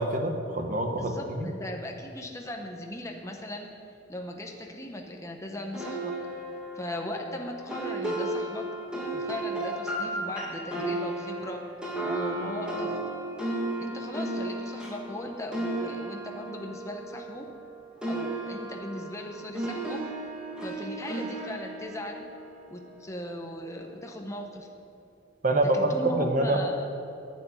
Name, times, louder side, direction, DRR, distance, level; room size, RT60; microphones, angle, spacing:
voice 1, 0.0-1.5 25.4-26.6, right 2 dB, 40° right, 4 dB, 1.3 m, -26 dB
voice 2, 1.0-3.7 4.1-6.2 6.7-8.7 9.1-11.6 12.0-13.0 13.8-17.5 18.1-20.2 20.6-22.2 22.7-24.7 25.7-26.9, left 1 dB, 15° left, 2 dB, 1.1 m, -38 dB
sound 1, 5.7-17.7 18.0-23.2, right 1 dB, 5° right, 2.6 m, -34 dB
10.5 x 8.6 x 9.5 m, 2.8 s
head